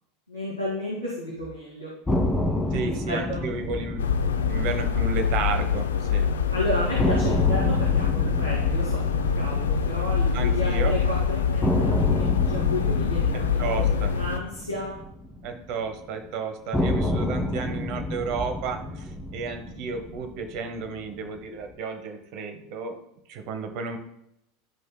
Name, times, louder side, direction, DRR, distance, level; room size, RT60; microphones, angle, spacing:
voice 1, 0.3-1.9 2.8-3.5 6.5-15.0, left 1 dB, 85° right, -7 dB, 2.3 m, -32 dB
sound 1, 2.1-6.1 6.4-6.5 7.0-11.1 11.6-16.0 16.7-21.1, left 1 dB, 10° left, 1.6 m, -29 dB
voice 2, 2.7-4.0 4.4-6.3 10.3-10.9 13.6-14.1 15.4-23.0 23.3-24.0, right 5 dB, 50° right, 7 dB, 1.1 m, -32 dB
sound 2, 4.0-14.4, left 6 dB, 75° left, 0.5 m, -24 dB
14.5 x 5.2 x 2.3 m, 0.79 s
figure-of-eight pair, 80°, 0 cm